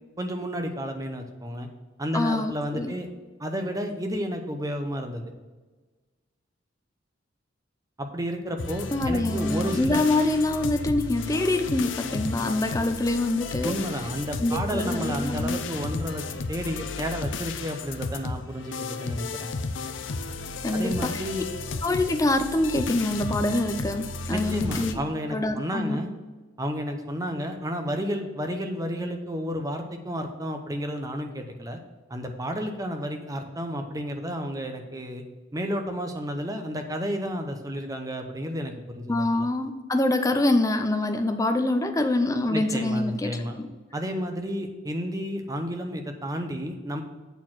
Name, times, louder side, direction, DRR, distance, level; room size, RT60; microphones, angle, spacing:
voice 1, 0.2-1.7 2.0-3.1 3.4-5.2 8.0-10.0 13.6-19.5 20.7-21.4 24.3-26.1 26.6-31.8 32.1-35.2 35.5-39.5 42.5-43.5 43.9-47.0, equal, 20° right, 5 dB, 0.7 m, -31 dB
voice 2, 2.1-2.9 8.9-13.8 14.4-15.6 20.6-21.2 21.8-25.0 25.3-26.1 39.1-43.7, left 2 dB, 15° left, 7 dB, 0.6 m, -25 dB
sound 1, 8.6-24.9, left 3 dB, 80° left, 0.6 m, -33 dB
8.2 x 4.4 x 6.1 m, 1.3 s
head